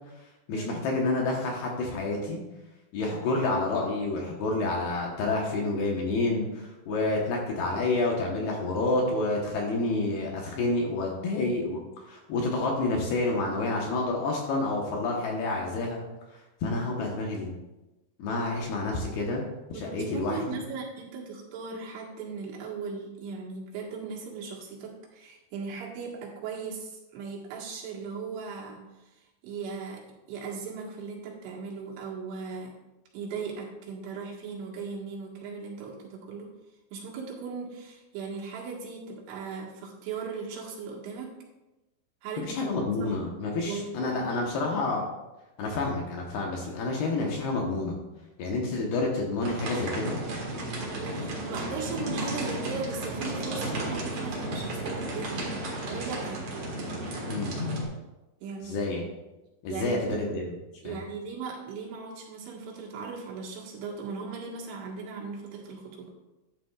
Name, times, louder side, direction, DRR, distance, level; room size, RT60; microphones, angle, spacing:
voice 1, 0.5-2.4 2.9-11.8 12.1-16.0 16.6-17.5 18.2-19.4 19.7-20.4 42.4-45.0 45.6-48.0 48.4-50.2 57.2-57.5 58.6-59.0 59.6-60.5 60.8-60.9, left 2 dB, 70° left, -1 dB, 2.7 m, -29 dB
voice 2, 19.7-32.7 33.1-36.5 36.9-41.4 42.2-43.1 43.7-44.5 51.0-55.5 55.9-56.4 58.4-58.8 59.7-60.2 60.8-66.1, right 5 dB, 80° right, -2 dB, 4.1 m, -38 dB
sound 1, 49.4-57.8, right 1 dB, 60° right, 1.5 m, -33 dB
12.0 x 10.0 x 2.4 m, 1.0 s
omnidirectional pair, 5.6 m